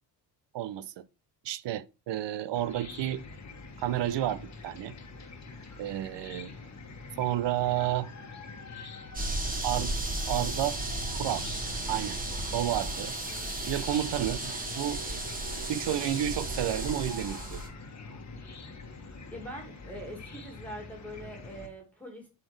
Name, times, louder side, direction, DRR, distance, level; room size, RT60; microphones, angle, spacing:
voice 1, 0.5-1.0 1.4-3.2 3.8-4.9 5.8-6.5 7.2-8.1 9.6-10.0 10.3-10.8 11.1-11.5 11.9-12.2 12.5-13.1 13.7-15.0 15.7-17.6, right 12 dB, 70° right, 0.6 m, -31 dB
Chicken rooster / Cricket, 2.6-21.7, left 3 dB, 40° left, 1.3 m, -45 dB
sound 1, 9.1-17.7, right 2 dB, 20° right, 1.4 m, -34 dB
voice 2, 19.3-22.3, equal, 5° left, 2.0 m, -43 dB
7.7 x 4.1 x 3.3 m
cardioid pair, 125°, 44 cm